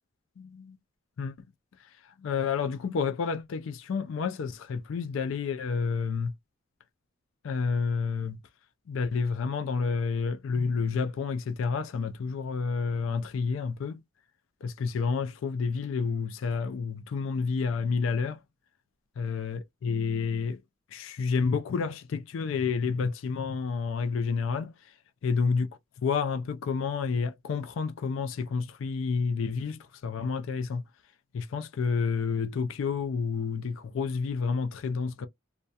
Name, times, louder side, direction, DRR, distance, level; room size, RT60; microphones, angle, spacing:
voice 1, 0.4-0.8 1.2-1.3 2.2-6.3 7.4-8.4 8.9-14.0 14.6-18.4 19.2-20.6 20.9-24.7 25.2-25.7 26.0-30.8 31.3-35.3, left 5 dB, 75° left, 0.4 m, -29 dB
2.3 x 2.1 x 2.6 m
head